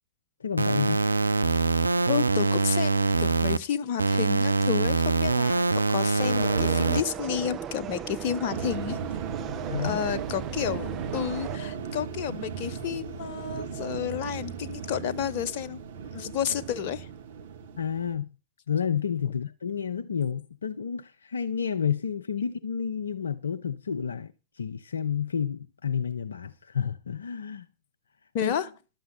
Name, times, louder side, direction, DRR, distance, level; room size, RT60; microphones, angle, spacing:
voice 1, 0.4-1.0 9.7-10.0 17.8-18.3 18.7-27.6 28.4-28.6, left 7 dB, 75° left, 0.6 m, -30 dB
sound 1, 0.6-3.6 4.0-7.0, right 3 dB, 85° right, 0.5 m, -24 dB
voice 2, 2.1-9.0 9.8-15.8 16.1-17.1 28.3-28.7, left 9 dB, 45° left, 1.1 m, -31 dB
sound 2, 6.2-11.6, right 9 dB, 25° right, 0.8 m, -37 dB
sound 3, 8.5-18.2, right 6 dB, 60° right, 2.0 m, -36 dB
12.0 x 6.8 x 6.4 m
figure-of-eight pair, 100°, 0 cm